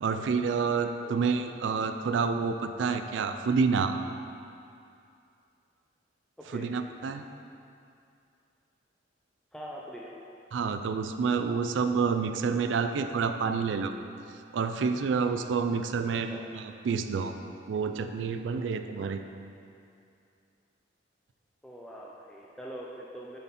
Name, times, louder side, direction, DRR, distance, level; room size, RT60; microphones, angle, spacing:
voice 1, 0.0-4.0 6.5-7.2 10.5-13.9 14.5-17.3 17.7-19.2, right 5 dB, 75° right, 8 dB, 0.3 m, -28 dB
voice 2, 9.5-10.1 16.2-16.4 21.6-23.4, equal, 5° left, -5 dB, 0.5 m, -43 dB
9.0 x 4.1 x 4.1 m, 2.5 s
head